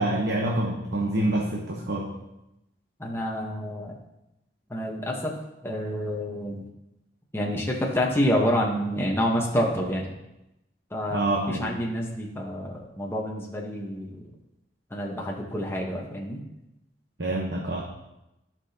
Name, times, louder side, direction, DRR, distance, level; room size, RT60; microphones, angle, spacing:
voice 1, 0.0-2.2 11.1-11.7 17.2-17.8, right 1 dB, 65° right, -1 dB, 1.1 m, -26 dB
voice 2, 3.0-4.0 4.7-5.3 5.6-6.7 7.3-10.1 10.9-14.3 14.9-16.4, equal, 15° left, -2 dB, 1.2 m, -28 dB
15.0 x 5.9 x 2.9 m, 0.91 s
head